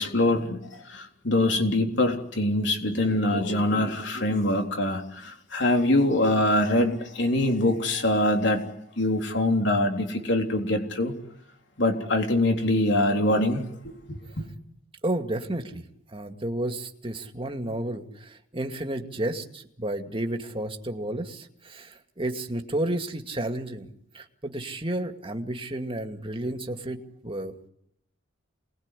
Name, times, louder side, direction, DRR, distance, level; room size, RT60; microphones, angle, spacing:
voice 1, 0.0-8.6 9.0-11.1 11.8-13.7 14.1-14.5, left 1 dB, 65° left, 3.7 m, -24 dB
voice 2, 15.0-15.8 16.1-23.9 24.1-27.5, right 1 dB, 30° right, 2.4 m, -32 dB
29.0 x 20.5 x 10.0 m
head